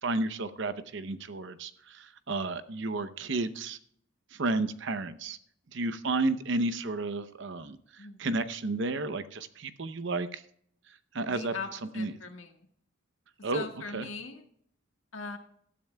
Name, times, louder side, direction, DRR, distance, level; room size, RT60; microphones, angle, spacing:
voice 1, 0.0-3.8 4.3-5.4 5.7-10.4 11.1-12.2 13.4-13.7 13.9-14.1, right 2 dB, 65° right, 13 dB, 0.8 m, -32 dB
voice 2, 11.3-11.7 11.9-12.5 13.5-14.4 15.1-15.4, left 4 dB, 90° left, 4 dB, 1.6 m, -40 dB
17.5 x 12.5 x 2.3 m, 0.66 s
head